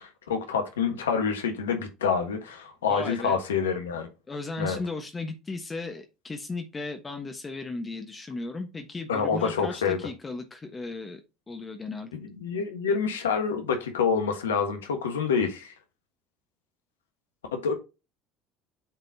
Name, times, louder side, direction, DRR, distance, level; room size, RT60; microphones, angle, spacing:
voice 1, 0.0-4.1 4.6-4.8 9.1-10.0 12.1-15.7 17.5-17.7, left 6 dB, 85° left, 1.3 m, -27 dB
voice 2, 2.9-3.4 4.3-11.2 11.5-12.1, left 3 dB, 25° left, 1.2 m, -35 dB
8.1 x 4.1 x 2.8 m
hypercardioid pair, 70°, 0 cm